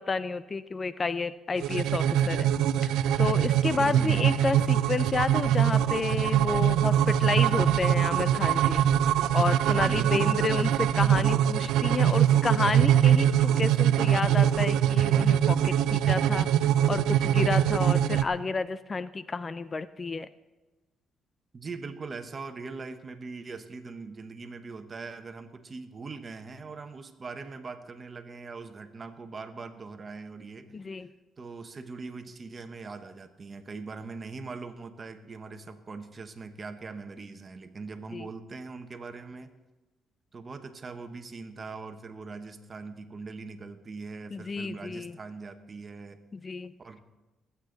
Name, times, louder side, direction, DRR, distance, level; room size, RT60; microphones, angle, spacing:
voice 1, 0.0-2.5 2.8-8.8 9.3-16.5 16.9-20.3 30.7-31.1 38.1-38.3 44.3-45.2 46.3-46.7, left 4 dB, 35° left, 15 dB, 0.4 m, -30 dB
sound 1, 1.6-18.2, right 10 dB, 90° right, 0.4 m, -23 dB
voice 2, 3.6-4.5 9.6-10.7 21.5-30.7 31.4-39.5 40.3-46.2 46.8-47.0, right 4 dB, 35° right, 8 dB, 1.2 m, -41 dB
20.5 x 8.4 x 4.0 m, 1.1 s
cardioid pair, 90°, 0 cm